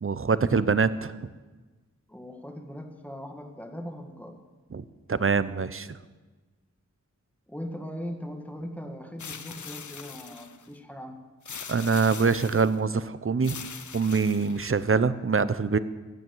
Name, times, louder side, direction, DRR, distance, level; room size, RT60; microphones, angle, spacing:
voice 1, 0.0-1.1 4.7-4.8 5.1-5.9 11.7-13.6 13.9-15.8, right 5 dB, 45° right, 15 dB, 0.8 m, -24 dB
voice 2, 2.1-4.4 7.5-11.2, equal, 5° left, 5 dB, 1.9 m, -39 dB
sound 1, 9.2-10.7 11.5-12.8 13.4-14.9, left 6 dB, 70° left, 0.8 m, -42 dB
16.0 x 9.8 x 7.9 m, 1.3 s
wide cardioid pair, 70°, 30 cm